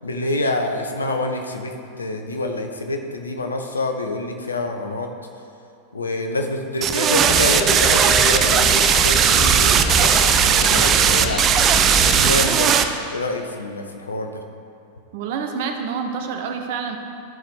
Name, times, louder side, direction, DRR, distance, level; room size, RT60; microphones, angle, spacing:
voice 1, 0.0-5.1 5.9-14.4, left 2 dB, 75° left, 4 dB, 0.8 m, -27 dB
sound 1, 6.8-12.8, right 8 dB, 30° right, 0.5 m, -17 dB
sound 2, 7.2-12.4, equal, 30° left, 1.0 m, -25 dB
voice 2, 15.1-17.0, right 6 dB, 50° right, 4 dB, 0.8 m, -27 dB
14.0 x 4.9 x 3.6 m, 2.6 s
figure-of-eight pair, 90°, 0 cm